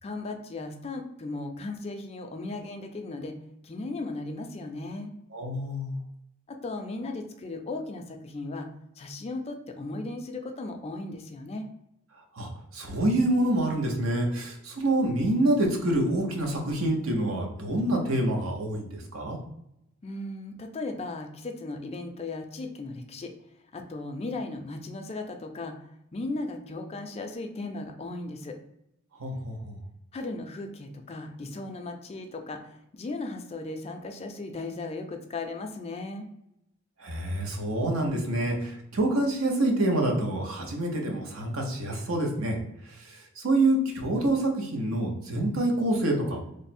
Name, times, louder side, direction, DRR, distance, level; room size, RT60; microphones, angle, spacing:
voice 1, 0.0-3.4 3.6-5.1 6.5-8.7 9.0-11.7 20.0-23.3 23.7-28.6 30.1-36.3, left 2 dB, 30° left, 5 dB, 0.4 m, -36 dB
voice 2, 5.3-5.9 12.3-19.4 29.1-29.8 37.0-42.6 42.8-46.4, right 1 dB, 80° right, 1 dB, 0.8 m, -27 dB
3.2 x 2.0 x 4.2 m, 0.80 s
head